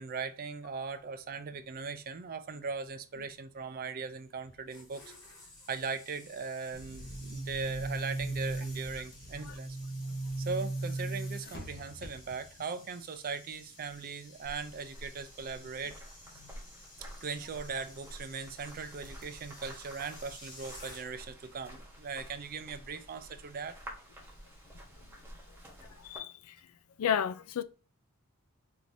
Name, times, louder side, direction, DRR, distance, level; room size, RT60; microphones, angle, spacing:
voice 1, 0.0-5.1 5.7-9.8 10.4-16.0 17.2-23.8, right 5 dB, 40° right, 0.4 m, -39 dB
sound 1, 4.4-21.4 21.6-21.9, left 1 dB, 20° left, 1.6 m, -55 dB
Boom, 6.7-12.5, right 2 dB, 45° left, 0.8 m, -38 dB
sound 2, 14.4-26.2, equal, 10° right, 1.1 m, -50 dB
voice 2, 27.0-27.6, left 8 dB, 70° left, 0.3 m, -31 dB
4.6 x 2.7 x 2.6 m
head